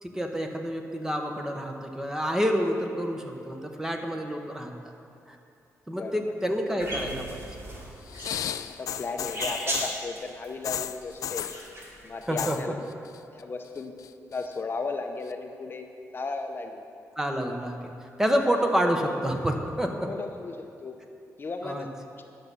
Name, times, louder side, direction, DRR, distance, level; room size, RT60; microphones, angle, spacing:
voice 1, 0.0-4.7 5.9-7.4 12.3-12.7 17.2-17.8 18.2-20.1 21.6-21.9, equal, 10° right, 3 dB, 0.9 m, -28 dB
sound 1, 6.8-12.2, right 1 dB, 45° right, 2.1 m, -36 dB
sound 2, 8.1-10.0 10.6-11.6 12.2-12.6 12.9-13.4 13.8-14.5 15.3-15.4, left 9 dB, 75° left, 0.3 m, -34 dB
voice 2, 8.8-11.5 12.0-12.9 13.3-13.9 14.3-15.9 16.1-16.8 20.1-21.0 21.4-21.8 22.2-22.3, left 3 dB, 40° left, 5 dB, 0.6 m, -35 dB
10.5 x 6.1 x 6.8 m, 2.5 s
cardioid pair, 110°, 6 cm